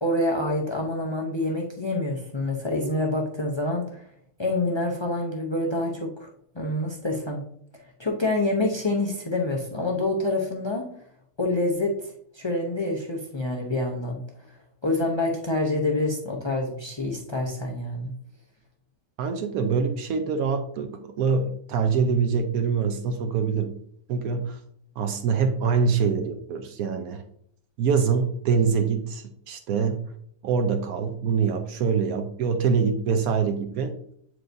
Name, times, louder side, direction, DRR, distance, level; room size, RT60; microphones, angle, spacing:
voice 1, 0.0-4.1 4.4-6.3 6.5-7.4 8.0-10.9 11.4-11.9 12.3-14.2 14.8-18.1, left 2 dB, 40° left, 1 dB, 0.4 m, -27 dB
voice 2, 19.2-23.8 24.1-24.6 25.0-27.2 27.8-30.0 30.4-34.0, right 5 dB, 75° right, 6 dB, 1.1 m, -24 dB
7.7 x 4.7 x 2.6 m, 0.68 s
omnidirectional pair, 1.6 m